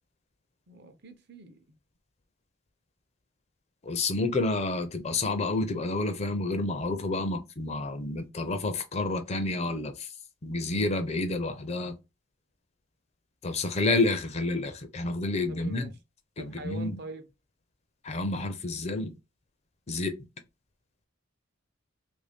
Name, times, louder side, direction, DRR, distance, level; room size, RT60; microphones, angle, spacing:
voice 1, 0.7-1.6 15.5-15.9 16.4-17.3, right 2 dB, 50° right, 0.7 m, -43 dB
voice 2, 3.9-10.1 10.4-11.9 13.4-15.9 16.4-17.0 18.0-19.1 19.9-20.1, left 2 dB, 30° left, 0.4 m, -29 dB
3.0 x 2.6 x 3.4 m
head